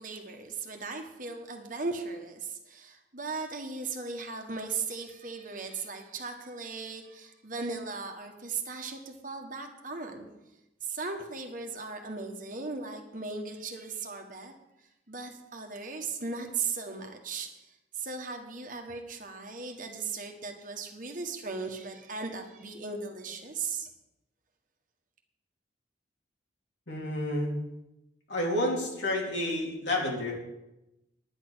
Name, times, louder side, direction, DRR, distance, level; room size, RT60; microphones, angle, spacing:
voice 1, 0.0-10.3 10.8-14.5 15.1-23.9, right 4 dB, 45° right, 4 dB, 1.5 m, -37 dB
voice 2, 26.9-27.5 28.3-30.4, left 1 dB, 75° left, -1 dB, 3.3 m, -30 dB
10.5 x 10.0 x 6.3 m, 0.94 s
head